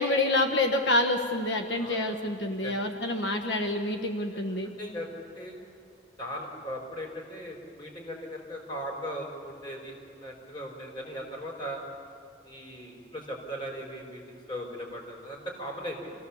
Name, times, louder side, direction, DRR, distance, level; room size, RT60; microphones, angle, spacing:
voice 1, 0.0-4.7, left 2 dB, 85° left, 5 dB, 1.3 m, -27 dB
voice 2, 1.7-2.3 2.6-2.8 4.3-5.1 5.3-5.6 6.2-11.8 12.4-16.1, equal, 30° left, 0 dB, 4.6 m, -39 dB
27.5 x 16.5 x 7.2 m, 2.3 s
head